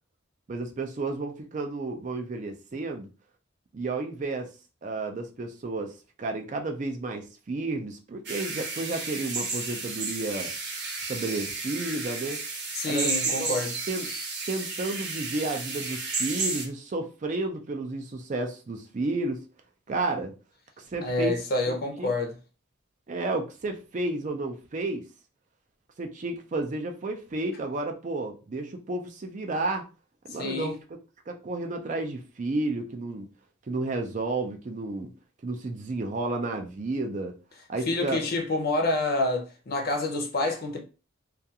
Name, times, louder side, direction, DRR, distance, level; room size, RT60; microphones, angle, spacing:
voice 1, 0.5-3.1 3.7-4.5 4.8-5.9 6.2-10.5 11.1-12.4 12.8-13.1 13.4-13.5 13.9-14.1 14.5-19.4 19.9-20.3 20.8-21.4 21.7-22.1 23.1-25.0 26.0-29.8 30.3-30.7 31.3-33.3 33.7-35.1 35.4-37.3 37.7-38.2, right 2 dB, 35° right, 0.4 m, -31 dB
sound 1, 8.3-16.7, right 3 dB, 55° right, 0.7 m, -32 dB
voice 2, 12.7-13.7 21.0-22.3 30.4-30.7 37.9-40.8, left 2 dB, 50° left, 0.6 m, -27 dB
2.3 x 2.3 x 2.7 m
head